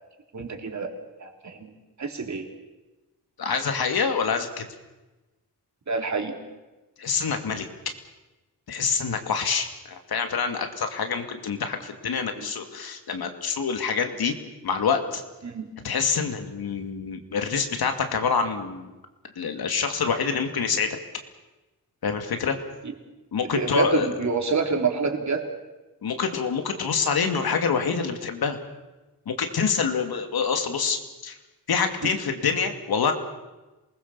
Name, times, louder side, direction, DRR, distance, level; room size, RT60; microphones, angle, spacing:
voice 1, 0.3-0.9 1.2-2.5 5.9-6.4 12.4-12.5 15.4-15.7 22.8-22.9 23.4-25.5, right 4 dB, 50° right, 3 dB, 3.6 m, -27 dB
voice 2, 3.4-4.6 7.0-7.7 8.7-14.3 14.6-15.2 15.8-18.9 19.4-21.0 22.0-22.6 23.3-24.1 26.0-28.6 29.3-31.3 31.7-33.1, left 5 dB, 85° left, 6 dB, 2.6 m, -26 dB
27.0 x 20.5 x 7.1 m, 1.1 s
wide cardioid pair, 110°, 36 cm